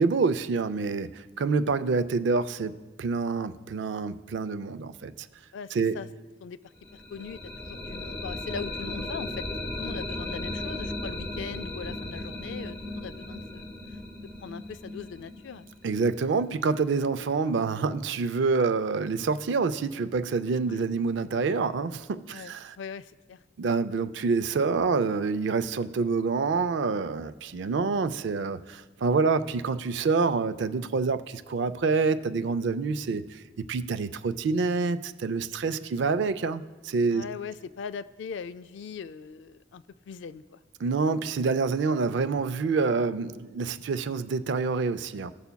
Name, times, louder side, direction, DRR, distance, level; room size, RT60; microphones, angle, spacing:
voice 1, 0.0-2.7 3.0-5.1 5.7-6.0 15.8-22.8 23.6-33.4 33.7-37.2 40.8-45.3, right 4 dB, 65° right, 13 dB, 0.4 m, -27 dB
voice 2, 5.5-6.1 6.4-6.6 6.9-9.4 9.8-14.0 14.4-15.7 20.7-20.8 22.3-23.4 35.8-36.0 37.1-40.6, left 6 dB, 65° left, 14 dB, 0.3 m, -40 dB
sound 1, 6.8-16.6, left 1 dB, 10° left, 0.8 m, -36 dB
15.5 x 6.8 x 2.2 m, 1.3 s
head